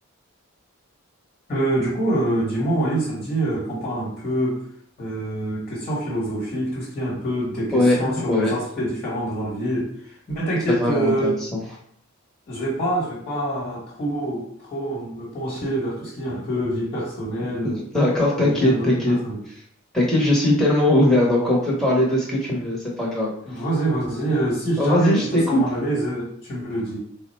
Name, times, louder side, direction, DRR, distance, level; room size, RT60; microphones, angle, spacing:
voice 1, 1.5-4.6 5.0-11.4 12.5-17.8 18.4-19.4 23.4-27.0, right 1 dB, 30° left, -4 dB, 1.2 m, -26 dB
voice 2, 7.7-8.5 10.8-11.4 17.6-19.2 19.9-23.6 24.8-25.6, left 1 dB, 5° left, -5 dB, 0.8 m, -20 dB
3.7 x 2.0 x 4.2 m, 0.65 s
head